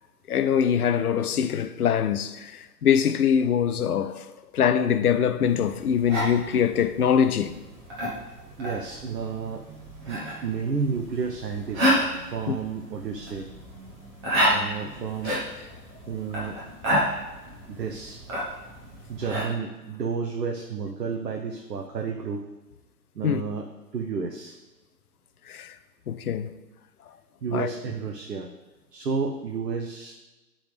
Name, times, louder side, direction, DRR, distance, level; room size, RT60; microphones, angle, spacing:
voice 1, 0.3-4.3 4.5-7.6 12.5-12.6 23.2-23.4 25.5-25.7 26.1-26.5 27.5-27.7, left 8 dB, 65° left, 0.6 m, -23 dB
sound 1, 5.5-19.4, equal, 15° right, 1.1 m, -30 dB
voice 2, 8.6-9.6 10.1-12.0 12.3-13.5 14.5-15.4 16.1-16.6 17.7-18.2 19.1-22.4 23.1-23.7 23.9-24.6 27.4-28.5 28.9-30.2, right 5 dB, 70° right, 0.9 m, -31 dB
11.5 x 3.9 x 3.4 m
figure-of-eight pair, 140°, 49 cm